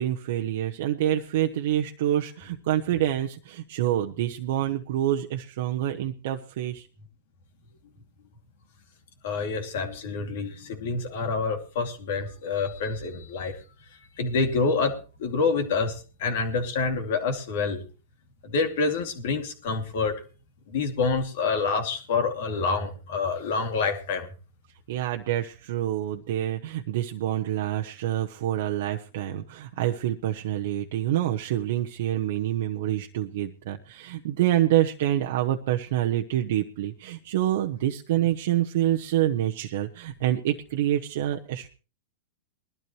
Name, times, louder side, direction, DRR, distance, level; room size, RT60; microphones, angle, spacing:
voice 1, 0.0-6.9 24.9-41.7, right 12 dB, 65° right, 3 dB, 0.9 m, -27 dB
voice 2, 9.2-13.6 14.2-17.8 18.4-20.2 20.7-24.3, left 4 dB, 65° left, 5 dB, 2.6 m, -27 dB
20.5 x 12.5 x 3.1 m, 0.35 s
hypercardioid pair, 125°, 0 cm